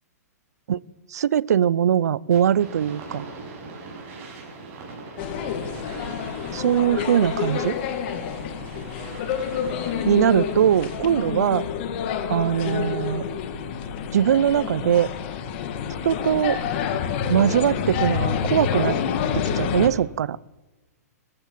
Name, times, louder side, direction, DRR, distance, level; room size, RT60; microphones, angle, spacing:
voice 1, 1.1-3.2 6.5-7.8 10.1-11.6 12.3-13.2 14.1-15.1 16.0-16.6 17.3-19.0 19.3-20.4, right 9 dB, 70° right, 23 dB, 0.6 m, -21 dB
sound 1, 2.3-11.2, right 3 dB, 25° right, 6.6 m, -41 dB
sound 2, 5.2-19.9, left 7 dB, 40° left, 2.0 m, -28 dB
23.5 x 15.0 x 7.5 m, 1.2 s
hypercardioid pair, 155°, 9 cm